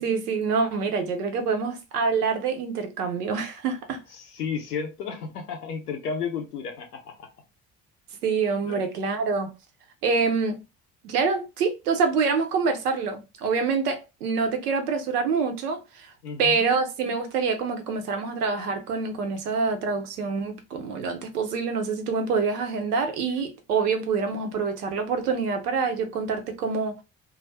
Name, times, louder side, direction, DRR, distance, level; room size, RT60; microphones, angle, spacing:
voice 1, 0.0-4.0 8.2-9.5 10.0-10.6 11.0-16.1 16.4-26.9, right 5 dB, 80° right, 0.6 m, -26 dB
voice 2, 4.2-7.3 8.7-8.8 16.2-16.7, left 6 dB, 85° left, 0.7 m, -33 dB
2.3 x 2.2 x 3.1 m
figure-of-eight pair, 50°, 45 cm